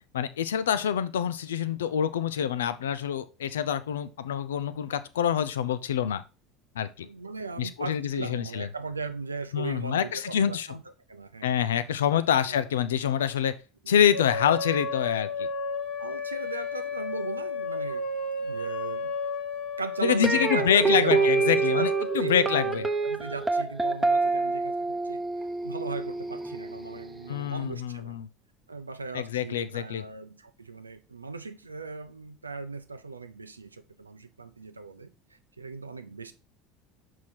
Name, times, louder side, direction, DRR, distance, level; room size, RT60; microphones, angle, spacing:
voice 1, 0.1-6.2 6.8-7.1 7.6-8.7 9.5-10.7 11.4-13.6 13.9-15.5 20.0-21.9 22.1-22.8 27.3-28.3 29.1-30.0, left 9 dB, 75° left, 0.5 m, -26 dB
voice 2, 7.0-10.8 11.1-11.9 12.3-12.6 13.8-13.9 16.0-18.1 18.4-19.1 19.8-28.2 28.7-36.3, right 4 dB, 90° right, 0.5 m, -38 dB
sound 1, 14.1-23.1, left 2 dB, 55° left, 1.1 m, -33 dB
sound 2, 20.2-27.3, right 3 dB, 10° right, 0.9 m, -27 dB
5.9 x 4.6 x 4.2 m
figure-of-eight pair, 70°, 0 cm